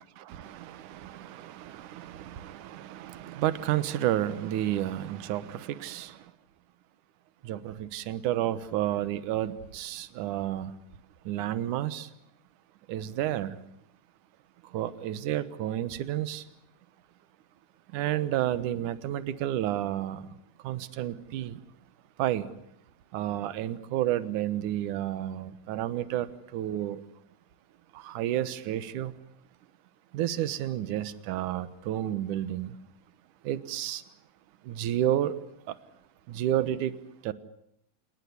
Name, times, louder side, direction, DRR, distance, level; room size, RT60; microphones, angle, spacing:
voice 1, 0.0-6.2 7.4-10.7 11.3-12.1 12.9-13.6 14.7-16.4 17.9-20.2 20.6-21.6 22.2-22.5 23.1-27.0 28.0-29.1 30.1-32.7 33.4-34.0 34.7-35.3 35.7-35.8 36.3-36.9 37.2-37.3, right 12 dB, 65° right, 15 dB, 2.5 m, -31 dB
28.0 x 19.0 x 9.9 m, 0.78 s
omnidirectional pair, 4.1 m